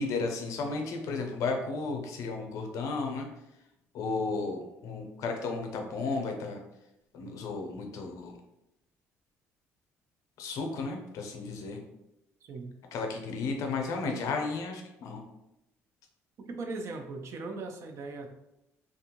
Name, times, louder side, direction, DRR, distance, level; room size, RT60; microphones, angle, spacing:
voice 1, 0.0-3.3 3.9-6.6 7.1-8.4 10.4-11.8 12.9-15.2, left 3 dB, 75° left, 3 dB, 0.5 m, -33 dB
voice 2, 12.4-12.7 16.5-18.3, right 3 dB, 55° right, 4 dB, 0.5 m, -38 dB
2.6 x 2.3 x 2.9 m, 0.88 s
cardioid pair, 95°, 6 cm